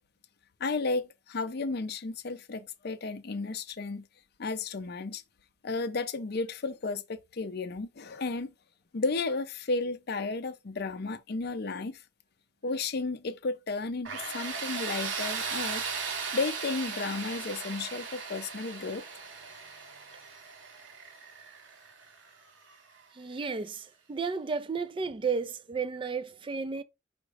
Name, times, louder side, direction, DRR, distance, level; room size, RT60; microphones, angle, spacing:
voice 1, 0.6-4.1 4.4-5.2 5.6-8.5 8.9-12.0 12.6-15.8 16.3-19.0, left 3 dB, 55° left, 0.6 m, -33 dB
Tools, 14.1-22.8, right 5 dB, 75° right, 0.9 m, -37 dB
voice 2, 23.1-26.8, right 5 dB, 25° right, 0.4 m, -33 dB
5.0 x 2.0 x 4.7 m
head